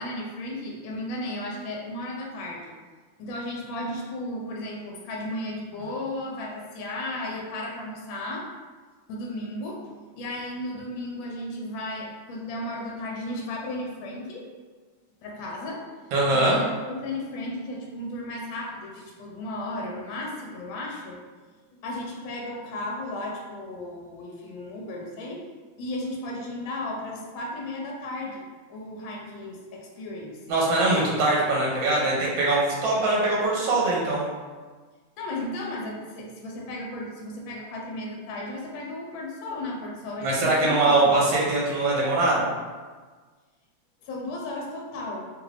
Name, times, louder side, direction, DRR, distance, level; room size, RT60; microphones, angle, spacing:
voice 1, 0.0-2.7 3.2-8.4 9.1-14.4 15.2-15.8 16.3-21.2 21.8-25.5 25.8-30.3 35.2-41.1 44.0-45.3, left 1 dB, 80° left, -1 dB, 1.4 m, -34 dB
voice 2, 16.1-16.6 30.5-34.2 40.2-42.4, right 2 dB, 75° right, -5 dB, 1.5 m, -22 dB
3.4 x 2.5 x 3.2 m, 1.4 s
omnidirectional pair, 2.2 m